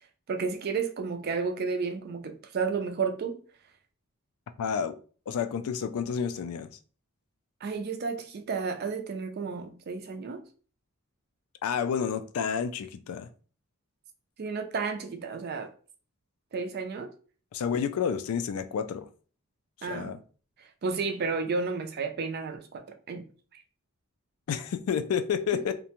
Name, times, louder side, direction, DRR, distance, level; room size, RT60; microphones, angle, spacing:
voice 1, 0.3-3.4 7.6-10.4 14.4-15.7 16.5-17.1 19.8-20.2 20.8-23.3 23.5-23.6, right 4 dB, 50° right, 0.4 m, -32 dB
voice 2, 4.6-5.0 5.3-6.7 11.6-13.3 17.5-19.1 19.9-20.2 24.5-25.7, left 7 dB, 85° left, 0.3 m, -30 dB
2.5 x 2.1 x 2.8 m
head